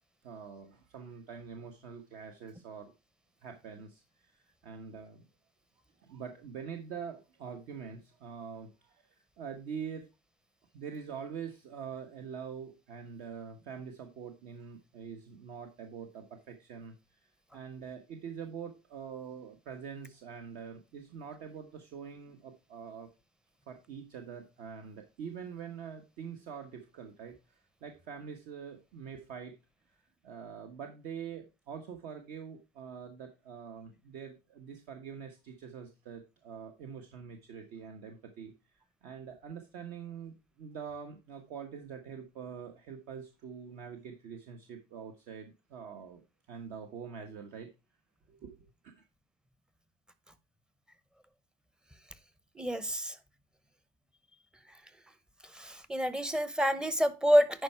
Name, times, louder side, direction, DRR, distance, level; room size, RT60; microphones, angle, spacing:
voice 1, 0.2-2.9 3.4-5.3 6.0-9.1 9.4-10.1 10.7-17.0 17.5-23.1 23.7-29.5 30.2-38.5 39.0-46.2 46.5-47.7 48.3-48.5 48.8-49.0, right 7 dB, 65° right, 1.2 m, -44 dB
voice 2, 52.6-53.1 55.5-57.6, equal, 5° right, 0.7 m, -27 dB
10.5 x 4.6 x 4.4 m
cardioid pair, 145°, 14 cm